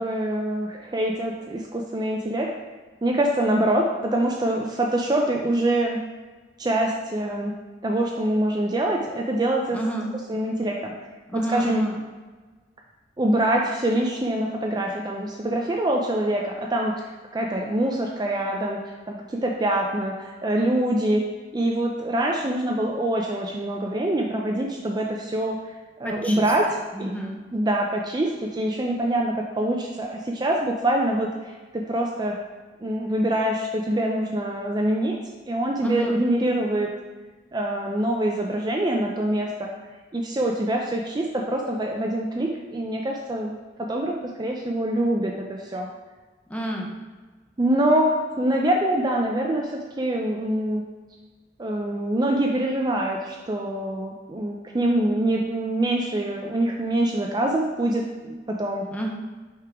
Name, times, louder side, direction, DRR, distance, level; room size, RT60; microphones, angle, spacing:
voice 1, 0.0-2.5 3.0-6.0 6.6-7.5 7.8-9.8 10.3-10.9 11.5-11.8 13.2-16.9 17.3-18.8 19.1-21.2 21.5-25.6 26.0-26.7 27.0-27.1 27.5-31.3 31.9-32.4 32.8-35.2 35.5-36.9 37.5-39.7 40.1-43.5 43.8-45.9 47.6-50.8 51.6-58.8, right 1 dB, 25° right, 0 dB, 0.4 m, -24 dB
voice 2, 9.7-10.1 11.3-12.0 26.0-26.5 26.9-27.4 35.8-36.2 46.5-46.9 58.9-59.1, equal, 10° left, 0 dB, 0.7 m, -29 dB
5.7 x 3.7 x 4.7 m, 1.3 s
head